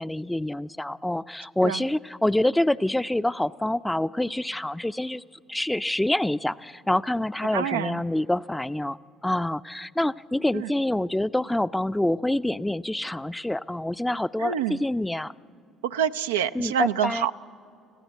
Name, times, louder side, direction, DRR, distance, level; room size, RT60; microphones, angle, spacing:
voice 1, 0.0-5.2 5.5-15.3 16.5-17.3, left 1 dB, 10° left, 15 dB, 0.5 m, -26 dB
voice 2, 7.5-8.0 14.4-14.7 15.8-17.3, right 9 dB, 90° right, 9 dB, 0.4 m, -26 dB
25.0 x 15.5 x 8.1 m, 2.5 s
hypercardioid pair, 60°, 0 cm